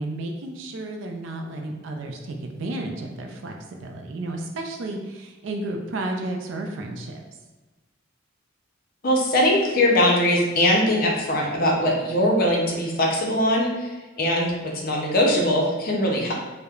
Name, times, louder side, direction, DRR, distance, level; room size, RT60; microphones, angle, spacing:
voice 1, 0.0-3.5 3.8-7.2, right 2 dB, 65° right, 3 dB, 0.4 m, -32 dB
voice 2, 9.0-16.3, left 1 dB, 50° left, -2 dB, 0.5 m, -21 dB
3.0 x 2.0 x 2.3 m, 1.2 s
head